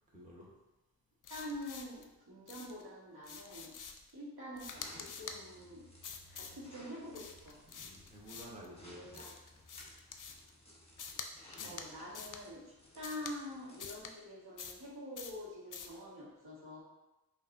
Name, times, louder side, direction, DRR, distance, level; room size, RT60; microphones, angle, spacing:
voice 1, 0.1-0.5 7.7-9.3 11.6-11.8, equal, 20° right, -5 dB, 1.1 m, -52 dB
sound 1, 1.2-2.1 2.5-2.8 3.2-4.1 4.6-5.4 6.0-6.6 7.1-8.7 9.1-10.5 11.0-11.3 11.5-11.9 12.1-12.4 13.0-13.4 13.8-14.1 14.6-14.9 15.2-15.4 15.7-16.0, left 6 dB, 55° left, 0.5 m, -47 dB
voice 2, 1.3-3.7 4.1-5.9 6.3-7.6 9.0-9.3 11.6-16.8, left 1 dB, 75° right, -6 dB, 1.3 m, -46 dB
sound 2, 4.7-14.0, left 1 dB, 15° left, 0.9 m, -59 dB
5.3 x 2.5 x 2.6 m, 1.0 s
wide cardioid pair, 70°, 38 cm